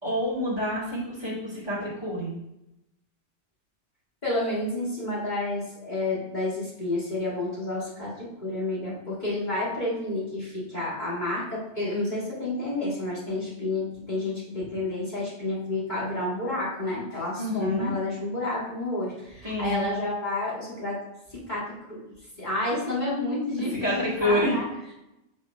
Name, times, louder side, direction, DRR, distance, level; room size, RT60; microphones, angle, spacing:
voice 1, 0.0-2.3 17.4-17.9 19.4-19.9 23.8-24.6, equal, 25° right, -7 dB, 2.4 m, -28 dB
voice 2, 4.2-21.0 21.3-24.6, left 2 dB, 40° left, -7 dB, 2.0 m, -30 dB
5.4 x 3.5 x 5.6 m, 0.90 s
omnidirectional pair, 1.1 m